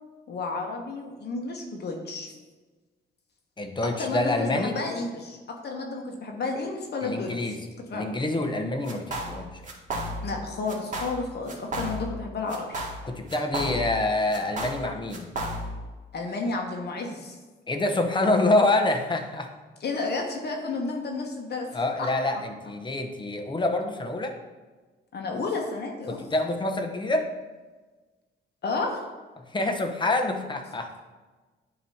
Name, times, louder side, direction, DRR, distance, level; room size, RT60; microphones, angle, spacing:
voice 1, 0.3-2.3 4.0-5.4 5.6-7.5 7.9-8.1 10.2-12.8 16.1-17.4 19.8-22.1 25.1-26.2 28.6-29.0, left 3 dB, 55° left, 1 dB, 1.2 m, -31 dB
voice 2, 3.6-4.8 7.0-7.7 7.9-9.5 13.0-15.3 17.7-19.5 21.7-24.3 26.1-27.3 29.4-31.0, left 2 dB, 25° left, 4 dB, 0.9 m, -26 dB
sound 1, 8.9-9.4 9.6-10.4 10.7-11.2 11.5-12.2 12.5-14.0 14.3-15.8, right 1 dB, 40° right, 1.9 m, -33 dB
9.1 x 3.1 x 5.6 m, 1.3 s
cardioid pair, 90°, 20 cm